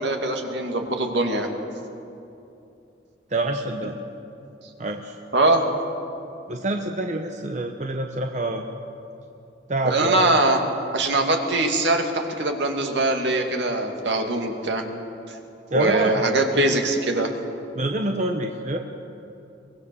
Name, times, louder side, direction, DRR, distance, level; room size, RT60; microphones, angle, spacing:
voice 1, 0.0-1.5 5.3-5.6 9.8-10.6 10.9-14.8 15.7-17.3, right 2 dB, 75° right, 3 dB, 2.3 m, -22 dB
voice 2, 3.3-4.0 4.8-5.1 6.5-8.6 9.7-10.3 15.7-16.2 16.7-16.8 17.8-18.8, right 2 dB, 40° right, 3 dB, 1.0 m, -26 dB
23.5 x 20.5 x 7.0 m, 2.8 s
head